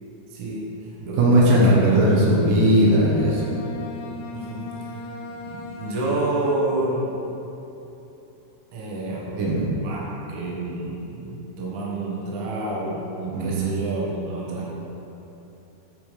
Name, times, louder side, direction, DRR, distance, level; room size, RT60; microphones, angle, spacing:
voice 1, 0.3-1.9 4.3-4.7 5.4-7.2 8.7-9.4 9.8-14.7, right 2 dB, 90° right, -5 dB, 1.7 m, -29 dB
voice 2, 1.0-3.6 9.3-9.7 13.3-13.7, right 1 dB, 70° right, -5 dB, 2.1 m, -18 dB
Bowed string instrument, 2.7-7.0, left 3 dB, 80° left, 2.4 m, -38 dB
11.0 x 5.0 x 5.1 m, 3.0 s
omnidirectional pair, 5.7 m